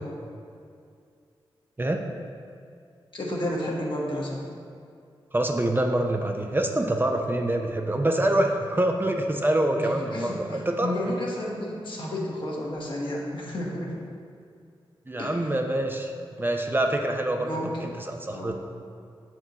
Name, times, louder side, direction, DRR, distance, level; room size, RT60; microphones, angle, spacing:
voice 1, 3.1-4.5 9.7-13.9 15.2-15.4 17.4-17.7 18.3-18.5, left 1 dB, 60° left, -3 dB, 1.3 m, -32 dB
voice 2, 5.3-10.9 15.1-16.1 16.4-18.5, right 1 dB, 20° right, 3 dB, 0.5 m, -25 dB
6.7 x 4.4 x 4.2 m, 2.3 s
cardioid pair, 65°, 9 cm